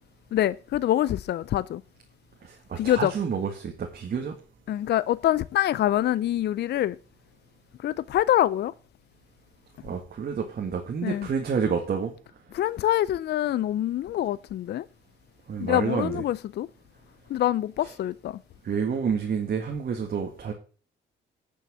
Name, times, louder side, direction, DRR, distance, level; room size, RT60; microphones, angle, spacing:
voice 1, 0.3-1.8 2.8-3.1 4.7-7.0 7.8-8.7 11.0-11.3 12.5-14.8 15.6-16.7 17.3-18.4, left 12 dB, 55° left, 0.4 m, -25 dB
voice 2, 2.4-4.3 9.8-12.1 15.5-16.2 17.8-17.9 18.6-20.5, right 6 dB, 50° right, 1.9 m, -29 dB
9.5 x 6.4 x 6.2 m
cardioid pair, 90°, 20 cm